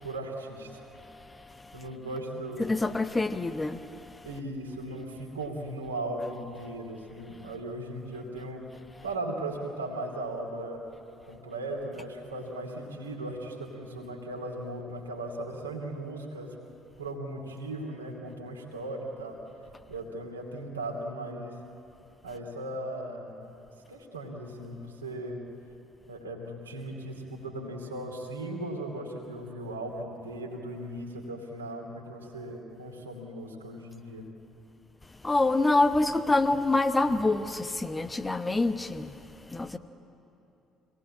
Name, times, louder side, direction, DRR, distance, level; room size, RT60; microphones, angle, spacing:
voice 1, 0.0-0.8 1.7-2.7 4.2-8.6 9.0-10.8 11.2-16.5 17.0-19.4 19.9-21.6 22.2-23.5 23.9-25.4 26.1-34.2 37.1-37.2, right 1 dB, 80° right, 2.6 m, -37 dB
voice 2, 2.6-3.8 35.2-39.1 39.5-39.8, left 2 dB, 15° left, 1.0 m, -26 dB
25.5 x 19.0 x 8.7 m
figure-of-eight pair, 50°, 0 cm